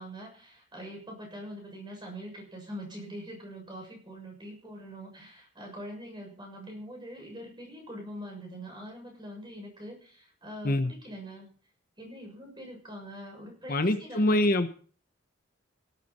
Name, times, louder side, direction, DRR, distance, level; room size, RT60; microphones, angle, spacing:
voice 1, 0.0-11.5 12.0-14.5, equal, 20° right, 1 dB, 6.9 m, -43 dB
voice 2, 13.7-14.7, left 1 dB, 45° left, 8 dB, 1.1 m, -24 dB
17.0 x 12.5 x 4.4 m, 0.42 s
head